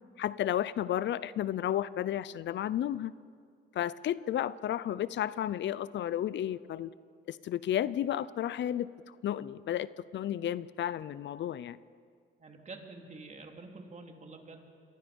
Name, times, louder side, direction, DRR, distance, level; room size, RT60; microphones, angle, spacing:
voice 1, 0.2-3.1 3.7-6.9 7.3-8.9 9.2-9.9 10.1-11.8, left 11 dB, 65° left, 17 dB, 0.6 m, -32 dB
voice 2, 12.4-14.6, right 3 dB, 35° right, 2 dB, 3.5 m, -47 dB
28.0 x 24.0 x 5.4 m, 2.2 s
cardioid pair, 90°, 20 cm